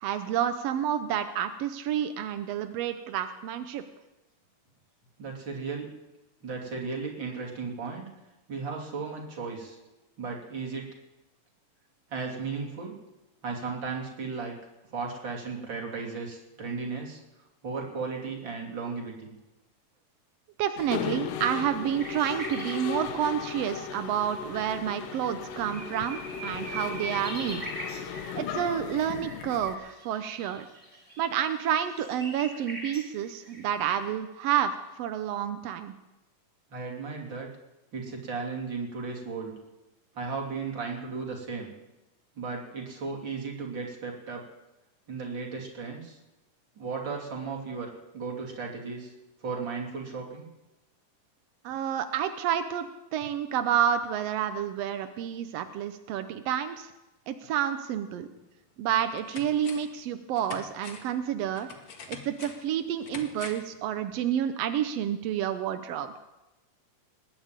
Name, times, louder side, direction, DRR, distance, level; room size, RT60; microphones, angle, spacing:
voice 1, 0.0-3.9 20.6-27.6 28.3-30.6 31.2-35.9 51.6-56.9 57.3-58.3 58.8-61.7 62.1-66.1, right 9 dB, 80° right, 9 dB, 1.4 m, -29 dB
voice 2, 5.2-5.9 6.4-8.0 8.5-9.8 10.2-10.9 12.1-12.9 13.4-14.6 14.9-17.2 17.6-19.3 36.7-37.5 37.9-39.5 40.1-41.7 42.4-44.4 45.1-46.2 46.8-49.1 49.4-50.5, right 4 dB, 35° right, -1 dB, 3.4 m, -35 dB
Mechanisms, 20.8-29.7, left 8 dB, 85° left, 2.6 m, -37 dB
sound 1, 22.0-22.9 24.3-24.4 24.9-25.0 25.2-34.1, right 1 dB, 10° right, 3.6 m, -42 dB
sound 2, 58.4-58.5 58.9-60.0 60.4-63.8 64.1-64.2, left 5 dB, 50° left, 2.1 m, -45 dB
20.5 x 7.1 x 9.0 m, 1.0 s
omnidirectional pair, 3.8 m